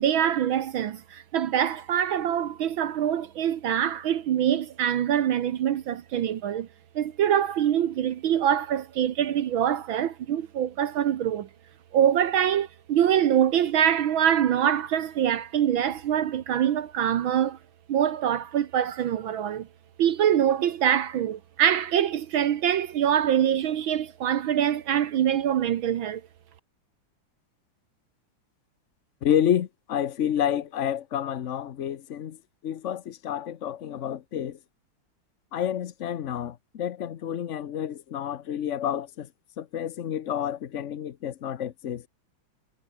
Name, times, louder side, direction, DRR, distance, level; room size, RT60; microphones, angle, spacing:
voice 1, 0.0-6.7 7.0-11.5 11.9-17.6 17.9-19.7 20.0-26.2, right 10 dB, 70° right, 1.8 m, -24 dB
voice 2, 29.2-32.4 32.6-34.6 35.5-39.3 39.6-42.1, left 10 dB, 70° left, 0.7 m, -29 dB
omnidirectional pair, 2.4 m